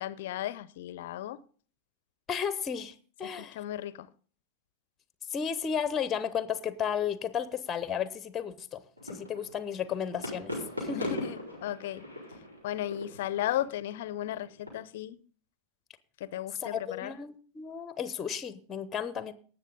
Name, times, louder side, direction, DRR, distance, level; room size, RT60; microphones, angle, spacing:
voice 1, 0.0-1.4 3.4-4.1 10.9-12.0 12.6-15.2 16.2-17.2, left 12 dB, 55° left, 0.6 m, -35 dB
voice 2, 2.3-3.6 5.3-11.1 16.6-19.3, left 7 dB, 20° left, 0.8 m, -34 dB
sound 1, 9.0-14.7, equal, 85° right, 5.0 m, -40 dB
18.5 x 7.4 x 3.9 m
figure-of-eight pair, 90°, 0 cm